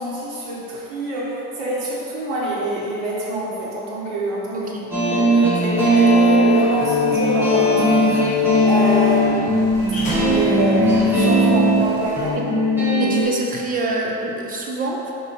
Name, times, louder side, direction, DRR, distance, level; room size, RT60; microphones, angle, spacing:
voice 1, 0.0-4.7 5.0-12.4, right 1 dB, 75° right, -7 dB, 1.4 m, -26 dB
sound 1, 4.9-13.2, equal, 5° right, 1.1 m, -18 dB
sound 2, 6.5-12.3, equal, 25° left, 1.4 m, -34 dB
voice 2, 13.0-15.1, right 2 dB, 25° right, -1 dB, 0.6 m, -26 dB
5.3 x 4.9 x 4.1 m, 2.8 s
cardioid pair, 170°, 33 cm